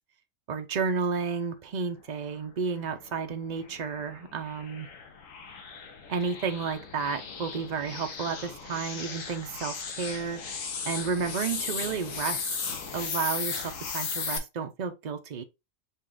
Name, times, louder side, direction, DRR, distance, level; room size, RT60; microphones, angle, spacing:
voice 1, 0.5-4.9 6.1-10.4 10.8-12.5 12.9-15.4, right 5 dB, 65° right, 0.4 m, -32 dB
sound 1, 2.8-14.4, left 5 dB, 60° left, 1.2 m, -36 dB
5.4 x 2.5 x 3.7 m
omnidirectional pair, 1.6 m